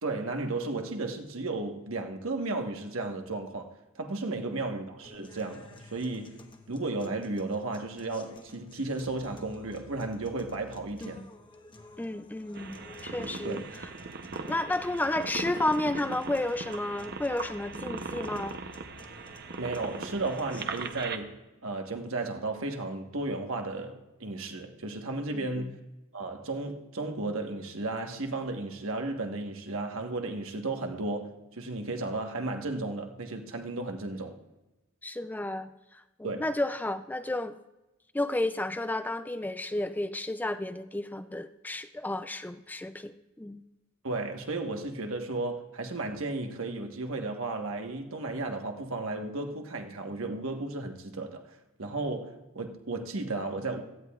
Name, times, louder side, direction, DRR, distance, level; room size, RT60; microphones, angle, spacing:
voice 1, 0.0-6.4 6.7-11.2 13.4-13.6 19.6-25.8 26.1-34.4 36.2-36.4 44.0-53.8, right 2 dB, 70° right, 1.3 m, -34 dB
sound 1, 5.0-21.0, left 3 dB, 25° left, 1.0 m, -53 dB
voice 2, 12.0-13.6 14.5-18.6 25.3-25.7 35.0-37.6 38.1-43.6, left 1 dB, 10° left, 0.3 m, -32 dB
sound 2, 12.5-21.2, right 4 dB, 50° right, 0.8 m, -39 dB
17.0 x 13.5 x 2.4 m
head